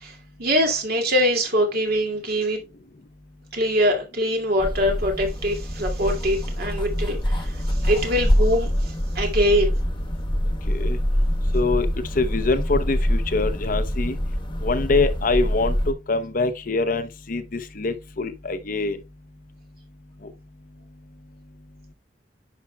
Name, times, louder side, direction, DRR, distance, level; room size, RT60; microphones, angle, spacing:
voice 1, 0.0-2.6 3.5-9.8, equal, 60° right, 2.4 m, -23 dB
sound 1, 4.6-15.9, equal, 30° left, 1.2 m, -25 dB
voice 2, 10.7-11.0 11.5-11.9 12.1-14.2 14.6-19.0, left 3 dB, 50° left, 0.8 m, -24 dB
10.0 x 5.8 x 2.3 m
head